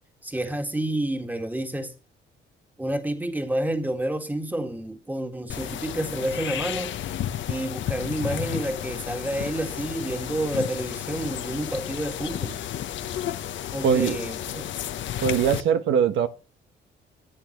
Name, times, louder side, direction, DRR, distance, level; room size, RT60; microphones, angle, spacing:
voice 1, 0.2-1.9 2.8-6.9 7.5-12.6 13.7-14.7, right 1 dB, 10° right, 1.9 m, -29 dB
sound 1, 5.5-15.6, left 11 dB, 70° left, 1.0 m, -32 dB
voice 2, 13.8-14.2 15.2-16.3, right 7 dB, 80° right, 1.1 m, -21 dB
15.0 x 8.4 x 3.1 m
cardioid pair, 90°, 20 cm